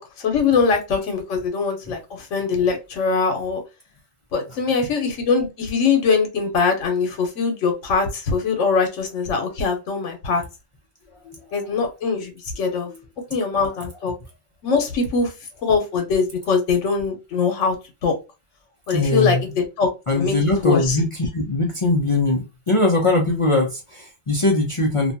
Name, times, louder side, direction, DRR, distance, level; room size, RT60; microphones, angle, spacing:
voice 1, 0.0-3.6 4.3-10.4 11.5-12.9 13.3-14.1 14.6-15.3 15.6-17.8 18.0-18.1 18.9-19.9 20.2-20.4 20.6-21.0, left 5 dB, 85° left, 1.0 m, -22 dB
voice 2, 18.9-19.4 20.1-25.1, left 2 dB, 50° left, 0.4 m, -21 dB
2.5 x 2.2 x 2.5 m
omnidirectional pair, 1.2 m